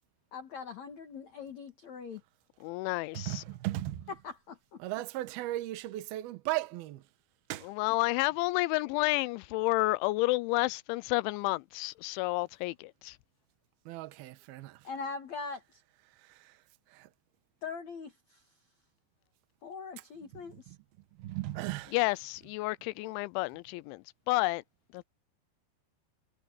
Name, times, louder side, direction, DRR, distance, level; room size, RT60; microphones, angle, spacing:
voice 1, 0.3-2.2 4.2-4.8 14.8-15.8 17.6-18.4 19.6-20.7, left 5 dB, 55° left, 2.2 m, -42 dB
voice 2, 2.6-3.4 7.6-13.2 21.9-24.6 24.9-25.0, left 21 dB, 85° left, 3.0 m, -30 dB
voice 3, 3.1-4.1 4.8-7.0 7.5-7.7 13.9-14.8 16.2-16.5 16.9-17.1 20.3-20.4 20.7-20.8 21.2-22.0, right 16 dB, 65° right, 2.8 m, -36 dB
omnidirectional pair, 5.3 m